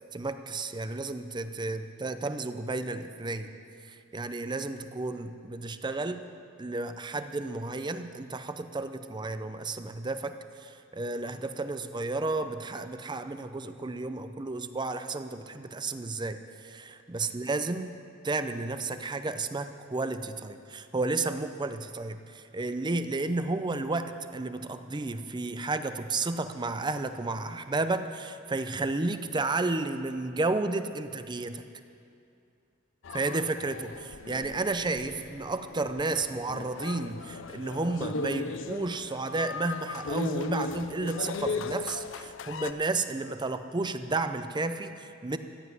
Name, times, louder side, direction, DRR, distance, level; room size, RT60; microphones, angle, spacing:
voice 1, 0.1-3.5 3.9-6.2 6.6-17.9 18.2-31.6 33.1-45.4, right 3 dB, 20° right, 9 dB, 0.6 m, -32 dB
sound 1, 33.0-42.7, left 3 dB, 65° left, 0.5 m, -37 dB
14.5 x 8.0 x 9.4 m, 2.5 s
head